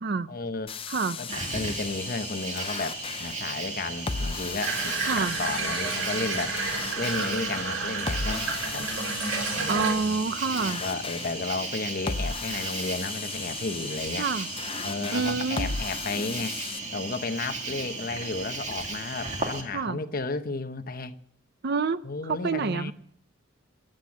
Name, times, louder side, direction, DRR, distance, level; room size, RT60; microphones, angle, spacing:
voice 1, 0.3-0.7 1.2-6.6 7.0-8.9 9.5-10.3 10.7-14.3 14.8-16.6 16.9-21.1 22.0-22.9, left 3 dB, 45° left, 0.9 m, -33 dB
sound 1, 0.7-16.8, left 5 dB, 25° left, 0.6 m, -37 dB
voice 2, 0.9-1.2 5.0-5.4 9.7-10.8 14.2-14.5 15.1-15.7 19.7-20.0 21.6-22.9, right 4 dB, 55° right, 0.6 m, -28 dB
Cricket, 1.3-19.6, right 3 dB, 35° right, 2.2 m, -36 dB
Water tap faucet / Bathtub (filling or washing), 4.6-9.9, right 4 dB, 85° right, 4.4 m, -31 dB
22.0 x 7.9 x 7.3 m
head